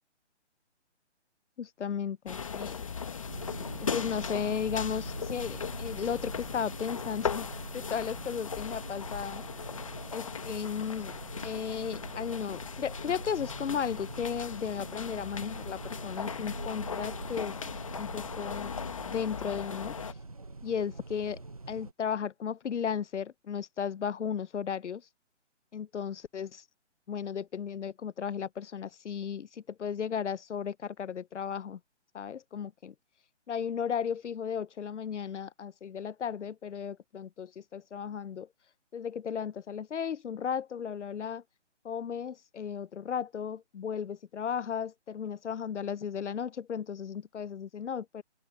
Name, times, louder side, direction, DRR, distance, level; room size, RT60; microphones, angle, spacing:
voice 1, 1.6-2.8 3.8-9.4 10.1-11.1 11.4-17.5 18.0-18.8 19.1-20.0 20.6-21.4 21.7-25.1 25.7-26.6 27.1-31.8 32.1-32.9 33.5-38.5 38.9-41.4 41.8-48.2, left 7 dB, 75° left, 0.7 m, -35 dB
sound 1, 2.3-20.1, left 6 dB, 30° left, 1.5 m, -38 dB
sound 2, 3.3-21.9, right 3 dB, 30° right, 0.7 m, -44 dB
open air
hypercardioid pair, 175°, 36 cm